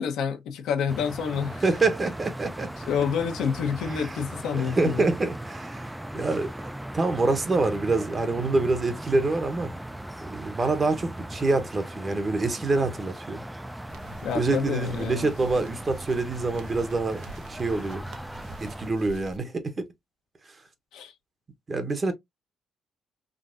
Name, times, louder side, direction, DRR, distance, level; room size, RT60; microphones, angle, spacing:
voice 1, 0.0-1.6 2.9-5.0 14.2-15.3 20.9-21.1, left 7 dB, 90° left, 0.9 m, -28 dB
sound 1, 0.9-18.9, right 1 dB, 5° right, 0.4 m, -38 dB
voice 2, 1.6-2.7 3.9-4.1 4.5-5.9 6.1-9.7 10.2-13.4 14.3-18.1 18.6-19.9 21.7-22.1, right 3 dB, 35° right, 1.0 m, -26 dB
sound 2, 13.9-19.4, right 3 dB, 75° right, 0.8 m, -46 dB
3.7 x 2.7 x 2.5 m
cardioid pair, 90°, 0 cm